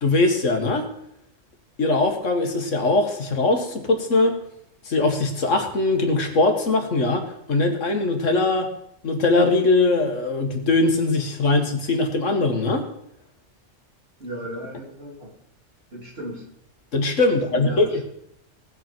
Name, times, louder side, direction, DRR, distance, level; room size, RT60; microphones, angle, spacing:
voice 1, 0.0-0.9 1.8-4.4 4.9-8.7 9.0-12.8 16.9-18.0, left 2 dB, 85° left, 4 dB, 2.1 m, -21 dB
voice 2, 14.2-15.3 15.9-16.4 17.5-18.0, equal, 55° right, -4 dB, 4.0 m, -35 dB
18.0 x 8.0 x 4.6 m, 0.73 s
omnidirectional pair, 1.3 m